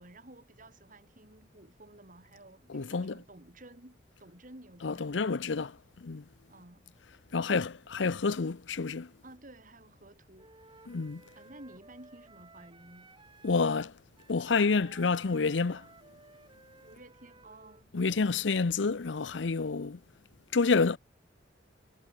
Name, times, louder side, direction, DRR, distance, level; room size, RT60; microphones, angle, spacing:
voice 1, 0.0-5.4 6.5-6.8 9.2-10.5 11.4-13.1 16.8-17.9, right 1 dB, 45° right, 4.5 m, -53 dB
voice 2, 2.7-3.2 4.8-5.7 6.0-6.2 7.3-9.1 10.9-11.2 13.4-13.9 14.3-15.9 17.9-20.0 20.5-21.0, left 4 dB, 90° left, 0.7 m, -28 dB
Wind instrument woodwind instrument, 10.4-17.9, right 3 dB, 25° right, 5.5 m, -57 dB
head